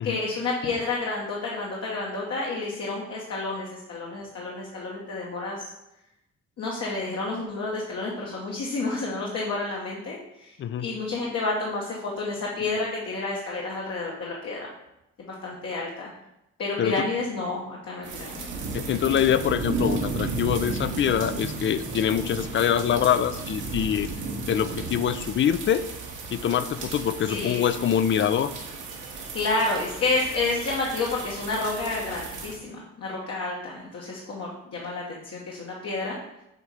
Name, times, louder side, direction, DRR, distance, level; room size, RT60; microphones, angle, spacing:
voice 1, 0.0-5.7 6.6-14.7 15.2-16.1 16.6-18.5 27.3-27.7 29.3-36.2, left 3 dB, 60° left, -3 dB, 1.2 m, -30 dB
sound 1, 18.0-32.6, right 3 dB, 75° right, 1.4 m, -34 dB
voice 2, 18.7-25.9 26.3-28.5, left 9 dB, 40° left, 13 dB, 0.4 m, -24 dB
7.9 x 2.8 x 4.8 m, 0.88 s
cardioid pair, 90°, 30 cm